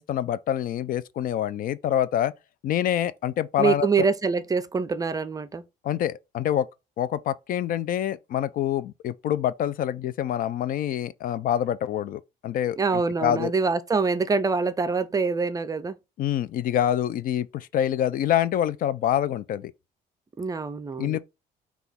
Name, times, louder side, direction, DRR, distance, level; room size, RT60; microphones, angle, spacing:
voice 1, 0.0-2.3 2.6-3.9 5.8-6.7 7.0-13.5 16.2-19.7 21.0-21.2, left 10 dB, 55° left, 0.4 m, -26 dB
voice 2, 3.6-5.6 12.8-16.0 20.4-21.2, right 4 dB, 20° right, 0.5 m, -25 dB
5.9 x 2.4 x 3.5 m
cardioid pair, 110°, 17 cm